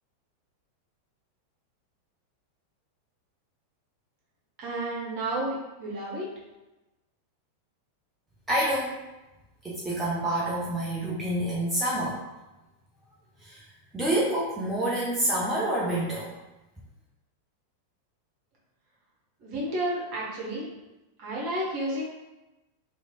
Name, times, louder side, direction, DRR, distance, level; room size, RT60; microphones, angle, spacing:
voice 1, 4.6-6.3 19.4-20.7 21.2-22.0, right 1 dB, 45° right, -5 dB, 1.1 m, -31 dB
voice 2, 8.5-9.0 9.6-12.2 13.4-13.6 13.9-16.3, right 1 dB, 10° right, -7 dB, 0.5 m, -27 dB
3.0 x 2.6 x 2.3 m, 1.0 s
figure-of-eight pair, 90°, 0 cm